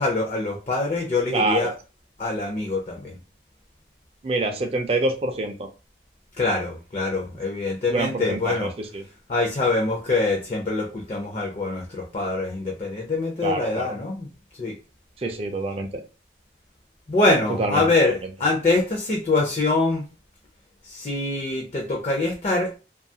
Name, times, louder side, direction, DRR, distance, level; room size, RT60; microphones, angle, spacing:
voice 1, 0.0-1.7 2.2-3.1 6.4-8.7 9.3-14.3 14.6-14.7 17.1-20.0 20.8-22.7, left 2 dB, 35° left, 0 dB, 0.5 m, -24 dB
voice 2, 1.3-1.7 4.2-5.7 7.9-9.0 13.4-14.0 15.2-16.0 17.6-17.9 18.2-18.3, right 2 dB, 30° right, 5 dB, 0.3 m, -26 dB
2.6 x 2.3 x 2.6 m, 0.32 s
head